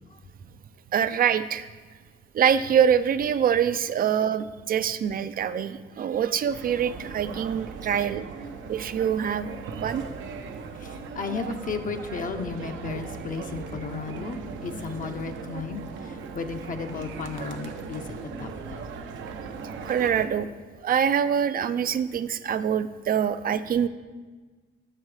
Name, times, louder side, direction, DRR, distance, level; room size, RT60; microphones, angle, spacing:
voice 1, 0.9-1.7 2.3-8.2 8.7-9.5 9.8-10.0 19.9-20.5 20.8-23.9, right 8 dB, 45° right, 13 dB, 0.4 m, -24 dB
sound 1, 6.5-20.3, right 5 dB, 75° right, 0.7 m, -38 dB
voice 2, 10.7-18.9, left 4 dB, 45° left, 6 dB, 0.6 m, -34 dB
7.7 x 5.7 x 4.8 m, 1.4 s
cardioid pair, 90°, 20 cm